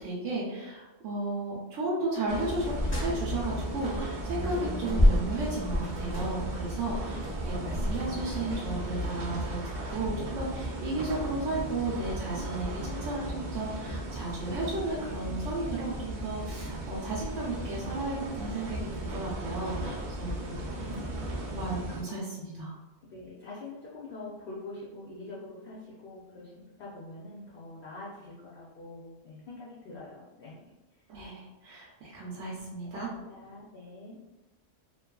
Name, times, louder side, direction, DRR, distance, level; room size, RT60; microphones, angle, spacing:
voice 1, 0.0-7.2 7.4-9.6 9.9-20.4 21.5-22.7 31.1-33.1, right 2 dB, 80° right, -6 dB, 0.9 m, -34 dB
sound 1, 2.3-22.0, right 1 dB, 60° right, 0.5 m, -36 dB
sound 2, 2.6-4.2 4.5-8.5, left 1 dB, 10° left, 0.9 m, -29 dB
voice 2, 7.0-7.5 20.4-21.7 23.1-30.6 30.9-31.0 32.9-34.2, left 2 dB, 60° left, -5 dB, 0.6 m, -45 dB
2.6 x 2.3 x 2.2 m, 1.1 s
omnidirectional pair, 1.3 m